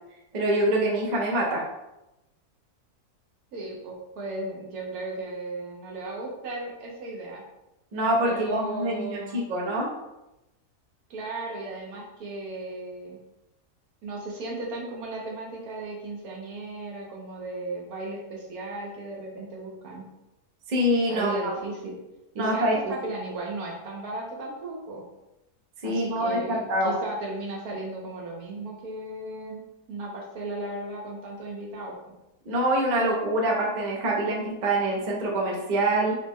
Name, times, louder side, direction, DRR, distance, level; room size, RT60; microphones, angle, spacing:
voice 1, 0.3-1.6 7.9-9.9 20.7-21.5 22.4-22.7 25.8-26.9 32.5-36.2, right 1 dB, 50° right, -2 dB, 0.5 m, -25 dB
voice 2, 3.5-7.4 8.2-9.4 11.1-13.2 14.0-20.0 21.1-21.9 22.3-25.0 25.8-29.6 29.9-31.9, right 2 dB, 70° right, -2 dB, 1.3 m, -35 dB
3.9 x 2.0 x 3.6 m, 0.94 s
omnidirectional pair, 1.7 m